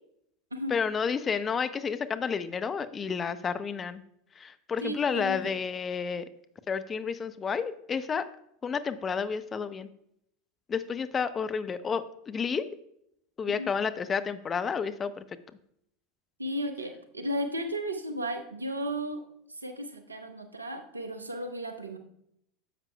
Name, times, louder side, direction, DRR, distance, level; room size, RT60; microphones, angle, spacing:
voice 1, 0.7-4.0 4.4-6.3 6.7-8.3 8.6-9.9 10.7-12.7 13.4-15.2, left 6 dB, 25° left, 12 dB, 0.5 m, -31 dB
voice 2, 4.8-5.5 13.6-13.7 16.4-22.0, equal, 85° right, 8 dB, 0.8 m, -34 dB
10.0 x 7.4 x 2.2 m, 0.74 s
figure-of-eight pair, 80°, 0 cm